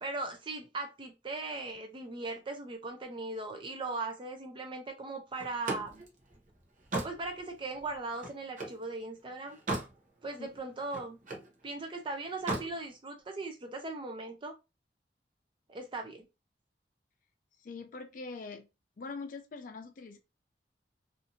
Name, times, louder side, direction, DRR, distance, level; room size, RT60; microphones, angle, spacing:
voice 1, 0.0-6.0 7.0-9.6 10.2-11.2 11.6-14.5 15.7-16.3, right 3 dB, 30° right, 0.4 m, -39 dB
Slam, 5.4-8.8 9.3-10.0 10.4-11.5 12.3-12.7, right 2 dB, 45° right, 0.8 m, -37 dB
voice 2, 17.6-18.7 19.0-20.2, left 4 dB, 50° left, 0.4 m, -43 dB
2.7 x 2.5 x 2.7 m
head